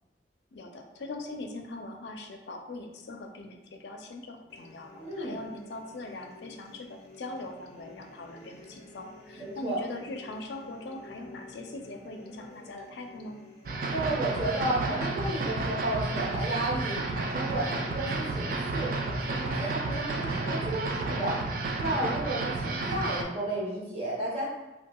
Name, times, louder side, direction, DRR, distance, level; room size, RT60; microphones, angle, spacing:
voice 1, 0.5-13.4, left 2 dB, 75° left, 4 dB, 0.4 m, -41 dB
sound 1, 4.5-21.9, left 2 dB, 40° left, 0.6 m, -51 dB
voice 2, 5.0-5.4 9.4-9.8 13.9-17.0 17.3-21.4 21.8-24.4, right 1 dB, 35° right, -4 dB, 1.0 m, -32 dB
sound 2, 13.6-23.2, right 2 dB, 50° right, 0.4 m, -31 dB
5.6 x 2.3 x 2.3 m, 1.0 s
head